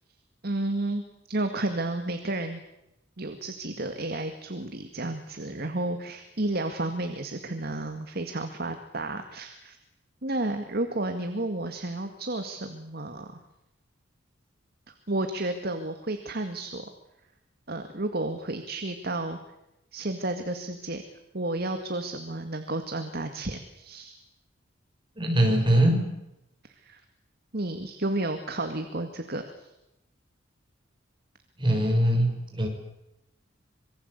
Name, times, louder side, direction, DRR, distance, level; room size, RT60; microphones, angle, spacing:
voice 1, 0.4-2.6 3.2-9.8 10.2-13.4 15.1-16.9 17.7-19.4 19.9-21.0 21.3-24.2 26.8-27.0 27.5-29.7, right 2 dB, 55° right, 7 dB, 2.1 m, -32 dB
voice 2, 25.2-26.0 31.6-32.7, right 1 dB, 25° right, 1 dB, 6.7 m, -22 dB
26.5 x 23.0 x 8.3 m, 0.87 s
head